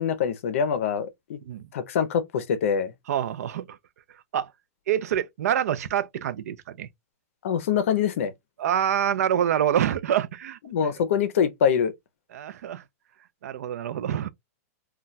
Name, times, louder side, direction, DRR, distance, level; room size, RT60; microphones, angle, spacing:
voice 1, 0.0-1.4 1.7-2.9 7.4-8.3 10.7-11.9, left 7 dB, 60° left, 0.6 m, -24 dB
voice 2, 3.1-3.8 4.3-4.5 4.9-6.9 8.6-10.6 12.3-12.8 13.4-14.3, right 10 dB, 75° right, 0.4 m, -26 dB
2.2 x 2.2 x 3.8 m
supercardioid pair, 175°, 8 cm